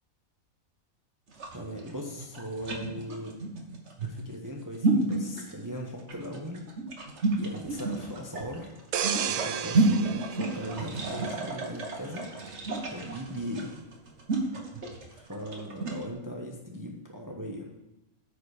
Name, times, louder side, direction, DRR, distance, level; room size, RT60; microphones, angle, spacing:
sound 1, 1.3-16.0, right 2 dB, 50° right, 1.6 m, -31 dB
voice 1, 1.5-3.3 4.0-6.6 7.4-8.7 9.3-12.3 12.8-13.7 15.1-17.7, equal, 15° right, 0 dB, 1.0 m, -39 dB
sound 2, 8.9-11.6 12.1-12.3, right 8 dB, 80° right, 1.1 m, -33 dB
13.0 x 5.2 x 5.0 m, 1.0 s
omnidirectional pair, 1.5 m